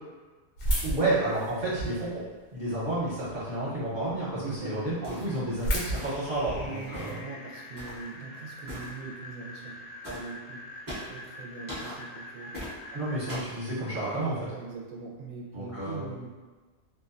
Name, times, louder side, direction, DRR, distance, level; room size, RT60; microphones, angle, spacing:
sound 1, 0.6-2.1 2.6-3.3 3.8-3.9 4.1-4.2 4.6-4.7 4.8-6.9, equal, 90° left, 1.0 m, -31 dB
voice 1, 0.8-2.1 2.5-7.2 12.9-14.4 15.5-16.0, right 2 dB, 45° right, -10 dB, 1.0 m, -30 dB
voice 2, 4.3-4.9 6.4-9.8 10.1-12.5 14.3-16.4, right 4 dB, 85° right, -2 dB, 1.0 m, -41 dB
sound 2, 5.0-5.4 5.9-6.4 6.9-7.2 7.8-8.1 8.7-8.9 10.0-10.3 10.9-11.2 11.7-12.0 12.5-12.7 13.3-13.6, equal, 25° right, 0.5 m, -40 dB
sound 3, 5.6-13.3, left 2 dB, 65° left, 0.7 m, -45 dB
2.6 x 2.2 x 2.4 m, 1.3 s
omnidirectional pair, 1.3 m